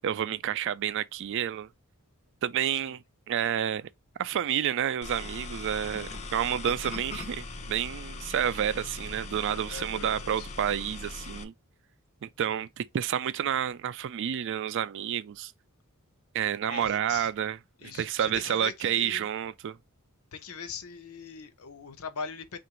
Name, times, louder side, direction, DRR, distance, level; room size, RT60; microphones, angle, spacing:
voice 1, 0.0-1.7 2.4-3.9 4.2-11.5 12.2-15.5 16.3-19.8, right 9 dB, 55° right, 0.3 m, -30 dB
sound 1, 5.0-11.4, left 3 dB, 30° left, 0.6 m, -40 dB
voice 2, 9.5-10.5 12.5-12.6 16.7-17.3 17.8-19.2 20.3-22.6, left 5 dB, 70° left, 0.7 m, -41 dB
3.8 x 2.5 x 4.3 m
head